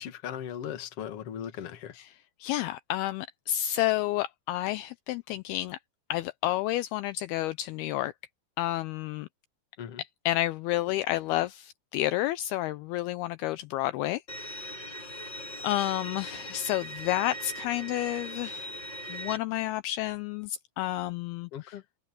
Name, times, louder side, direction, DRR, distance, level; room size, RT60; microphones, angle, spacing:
voice 1, 0.0-1.9 9.8-10.0 21.5-21.8, left 9 dB, 50° left, 2.0 m, -38 dB
voice 2, 1.9-5.8 6.1-8.1 8.6-9.3 10.0-14.8 15.6-18.7 19.1-21.8, left 14 dB, 80° left, 2.4 m, -30 dB
Bowed string instrument, 14.3-19.4, right 1 dB, 25° left, 7.1 m, -40 dB
open air
omnidirectional pair, 4.8 m